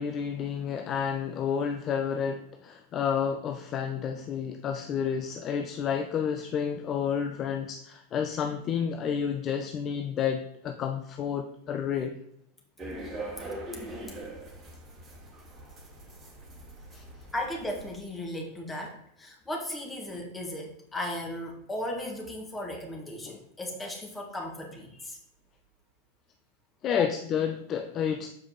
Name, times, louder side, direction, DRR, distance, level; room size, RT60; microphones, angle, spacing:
voice 1, 0.0-12.2 16.9-17.0 23.3-23.4 26.8-28.3, left 7 dB, 30° left, 6 dB, 0.5 m, -30 dB
sound 1, 12.8-18.0, right 1 dB, 20° right, 1.6 m, -42 dB
voice 2, 17.3-25.2 26.9-27.1, left 1 dB, 10° left, 0 dB, 1.7 m, -36 dB
7.4 x 4.7 x 4.2 m, 0.77 s
figure-of-eight pair, 90°, 0 cm